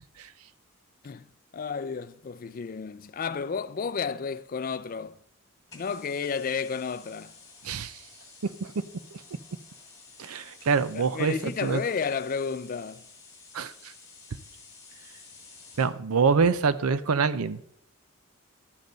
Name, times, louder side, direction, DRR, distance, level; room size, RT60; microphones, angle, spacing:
voice 1, 1.5-5.2 5.7-7.3 11.0-13.1, left 5 dB, 40° left, 0.4 m, -32 dB
sound 1, 5.7-16.0, left 4 dB, 15° left, 1.9 m, -52 dB
voice 2, 7.6-8.0 8.4-8.7 9.1-9.2 10.2-11.8 13.5-13.7 15.8-17.6, right 5 dB, 85° right, 0.6 m, -25 dB
12.0 x 7.5 x 3.9 m
head